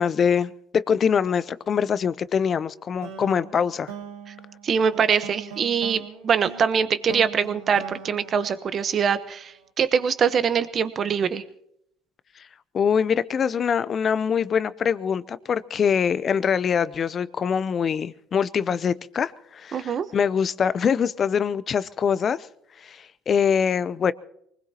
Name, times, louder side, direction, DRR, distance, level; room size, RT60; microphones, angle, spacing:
voice 1, 0.0-3.9 12.7-22.5 22.8-24.1, left 7 dB, 40° left, 17 dB, 0.6 m, -24 dB
sound 1, 3.0-9.4, right 7 dB, 90° right, 2.0 m, -41 dB
voice 2, 4.6-11.4 19.7-20.1, right 7 dB, 45° right, 12 dB, 1.0 m, -23 dB
24.5 x 20.0 x 2.9 m, 0.74 s
supercardioid pair, 85°, 0 cm